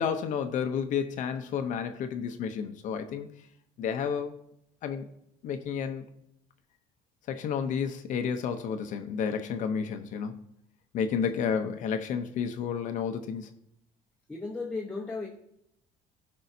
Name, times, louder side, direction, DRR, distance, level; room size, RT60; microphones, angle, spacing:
voice 1, 0.0-3.3 3.8-4.3 4.8-5.1 5.4-6.1 7.3-10.4 10.9-13.5, left 7 dB, 60° left, 7 dB, 0.8 m, -31 dB
voice 2, 14.3-15.3, left 3 dB, 10° left, -2 dB, 1.0 m, -35 dB
15.5 x 5.5 x 2.7 m, 0.79 s
cardioid pair, 125°, 15 cm